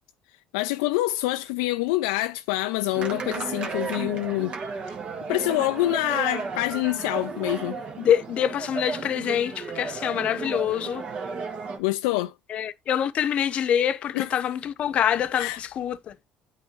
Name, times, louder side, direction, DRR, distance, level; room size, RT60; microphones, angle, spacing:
voice 1, 0.5-4.6 5.3-7.8 11.8-12.3 14.1-14.3 15.3-15.6, left 17 dB, 85° left, 0.3 m, -26 dB
sound 1, 2.9-11.8, right 4 dB, 50° right, 1.4 m, -33 dB
voice 2, 8.0-11.0 12.5-16.2, left 9 dB, 55° left, 0.8 m, -25 dB
8.8 x 4.4 x 3.0 m
supercardioid pair, 80°, 2 cm